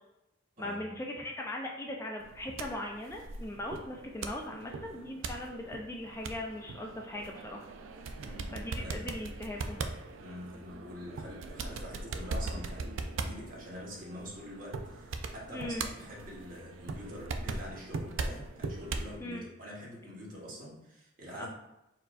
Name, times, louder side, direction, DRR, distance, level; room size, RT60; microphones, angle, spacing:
voice 1, 0.6-7.6 8.5-9.8 15.5-15.9 19.2-19.4 21.4-21.5, left 1 dB, 15° left, 0 dB, 0.4 m, -39 dB
sound 1, 2.2-19.2, right 3 dB, 90° right, 0.4 m, -40 dB
voice 2, 8.1-9.1 10.2-21.5, left 1 dB, 45° right, -4 dB, 1.2 m, -45 dB
4.5 x 4.5 x 2.4 m, 0.89 s
head